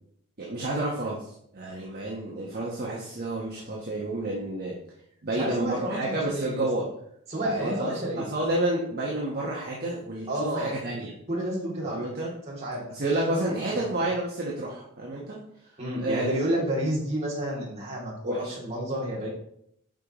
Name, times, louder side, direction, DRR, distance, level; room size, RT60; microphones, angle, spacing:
voice 1, 0.4-4.7 5.2-6.9 7.4-11.1 11.8-12.3 12.9-15.7 16.0-16.4 18.2-18.6, right 1 dB, 45° right, -3 dB, 1.1 m, -30 dB
voice 2, 5.3-6.6 7.3-8.3 10.3-10.9 11.3-12.0 12.5-13.0 13.4-13.5 13.7-13.9 15.8-19.3, right 1 dB, 30° right, -6 dB, 2.7 m, -30 dB
8.8 x 5.2 x 3.0 m, 0.72 s
head